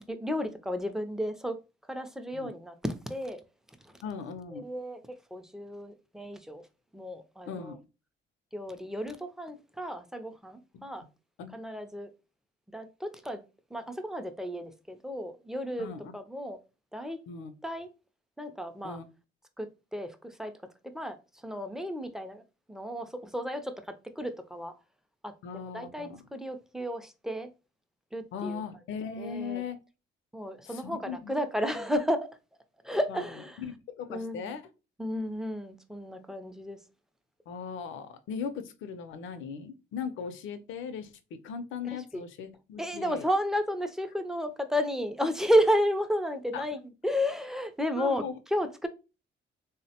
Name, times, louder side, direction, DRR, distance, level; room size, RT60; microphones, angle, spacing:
voice 1, 0.1-1.6 1.9-3.4 4.5-6.6 6.9-7.7 8.5-11.0 11.5-12.1 12.7-13.4 13.7-15.9 16.1-16.6 16.9-17.2 17.6-17.9 18.4-19.0 19.6-20.5 20.8-21.2 21.4-22.4 22.7-24.7 25.2-25.3 25.6-27.5 28.1-28.6 29.2-29.6 30.3-32.3 32.8-33.6 34.1-34.5 35.0-36.8 42.1-42.2 42.8-48.2 48.5-48.9, equal, ahead, 0.4 m, -32 dB
voice 2, 4.0-4.6 7.5-7.8 10.7-10.9 11.4-11.5 15.8-16.1 17.0-17.5 18.8-19.1 25.4-26.3 28.3-29.8 30.6-31.3 33.1-33.2 33.6-34.6 37.5-43.2 46.5-46.6 48.0-48.3, left 6 dB, 80° left, 0.5 m, -38 dB
3.4 x 2.1 x 2.7 m
cardioid pair, 90°, 20 cm